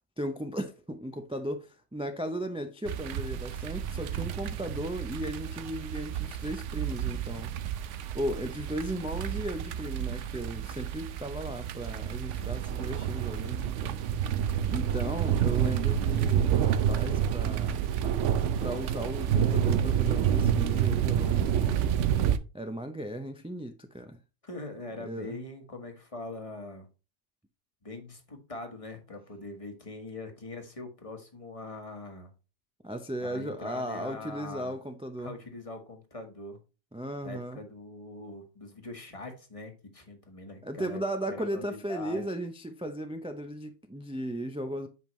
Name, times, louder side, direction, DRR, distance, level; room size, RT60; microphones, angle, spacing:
voice 1, 0.2-7.5 8.1-14.0 14.6-18.0 18.6-22.0 22.5-24.2 25.0-25.4 32.8-35.4 36.9-37.6 40.6-44.9, right 1 dB, 10° right, 0.3 m, -36 dB
sound 1, 2.9-22.4, right 9 dB, 90° right, 0.9 m, -29 dB
voice 2, 24.4-26.9 27.8-32.3 33.2-34.8 35.2-36.6 37.2-42.3, left 2 dB, 30° left, 1.3 m, -42 dB
7.9 x 5.3 x 3.1 m
omnidirectional pair, 1.2 m